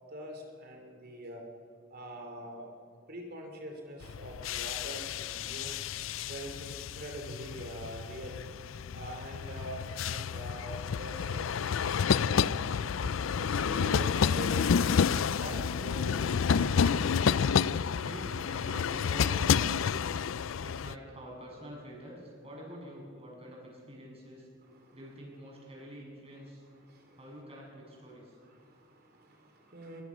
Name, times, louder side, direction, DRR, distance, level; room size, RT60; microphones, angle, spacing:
voice 1, 0.1-1.4 1.9-2.7 3.1-5.8 6.3-8.4 8.9-12.5 13.0-14.9 15.4-16.5 16.8-17.0 24.6-25.0 26.7-27.2 28.5-30.0, equal, 55° right, 3 dB, 3.0 m, -44 dB
voice 2, 2.3-2.8 16.7-19.9 20.6-24.5 24.9-26.6 27.1-28.4, equal, 30° right, -2 dB, 7.8 m, -47 dB
sound 1, 4.0-21.0, left 6 dB, 80° left, 0.4 m, -30 dB
22.5 x 22.0 x 6.2 m, 2.2 s
head